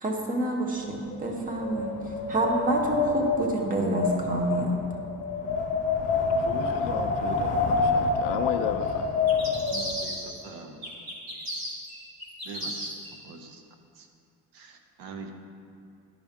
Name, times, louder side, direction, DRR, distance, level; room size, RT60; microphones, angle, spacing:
voice 1, 0.0-4.8, right 2 dB, 20° right, 1 dB, 0.9 m, -28 dB
Wind, 0.8-10.0, left 4 dB, 20° left, 0.9 m, -27 dB
voice 2, 6.4-9.1, left 10 dB, 55° left, 8 dB, 0.4 m, -33 dB
sound 1, 9.3-10.5 10.8-13.1, equal, 45° right, 1.8 m, -35 dB
voice 3, 9.7-10.8 12.5-12.9 13.2-13.6 14.0-14.1 14.5-15.3, right 4 dB, 65° right, 5 dB, 0.9 m, -43 dB
11.0 x 5.2 x 3.6 m, 2.4 s
cardioid pair, 160°, 39 cm